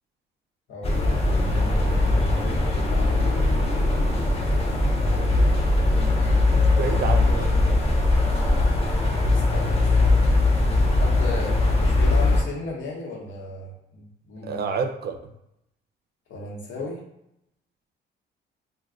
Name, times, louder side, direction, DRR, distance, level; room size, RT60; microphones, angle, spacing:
voice 1, 0.7-2.7 4.5-5.6 9.3-10.2 11.0-14.6 16.3-17.0, left 1 dB, 75° left, -2 dB, 1.0 m, -36 dB
sound 1, 0.8-12.4, left 2 dB, 30° left, 0.6 m, -20 dB
voice 2, 6.5-7.7 14.4-15.3, right 5 dB, 55° right, 6 dB, 0.4 m, -29 dB
2.3 x 2.2 x 3.6 m, 0.81 s
cardioid pair, 90°, 20 cm